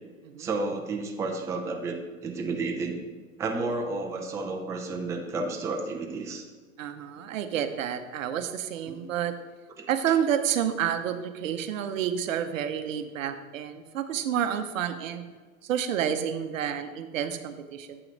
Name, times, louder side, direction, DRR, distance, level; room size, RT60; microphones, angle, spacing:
voice 1, 0.4-3.0 3.4-6.4 8.9-9.0 9.8-10.1, right 3 dB, 5° right, 2 dB, 0.5 m, -31 dB
voice 2, 6.8-9.3 9.9-15.2 15.6-18.0, right 9 dB, 65° right, 9 dB, 0.8 m, -29 dB
8.1 x 5.8 x 3.9 m, 1.4 s
hypercardioid pair, 115°, 42 cm